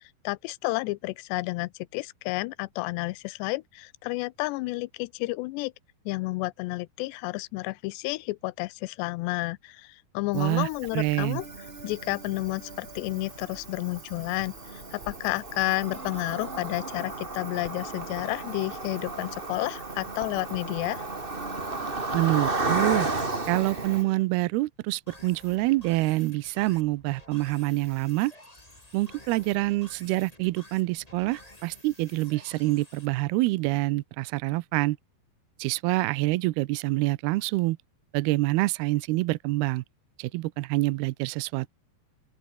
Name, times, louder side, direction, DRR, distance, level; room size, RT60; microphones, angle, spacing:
voice 1, 0.2-5.7 6.1-11.4 11.8-21.0, left 22 dB, 90° left, 2.8 m, -31 dB
Cricket, 10.3-24.0, right 2 dB, 15° right, 2.1 m, -34 dB
voice 2, 10.3-11.4 22.1-23.1 23.5-28.3 28.9-35.0 35.6-37.8 38.1-39.8 40.2-41.7, right 20 dB, 80° right, 2.5 m, -26 dB
sound 1, 11.3-24.3, right 4 dB, 60° right, 0.6 m, -47 dB
sound 2, 25.1-33.1, left 1 dB, 10° left, 5.3 m, -51 dB
open air
omnidirectional pair, 4.9 m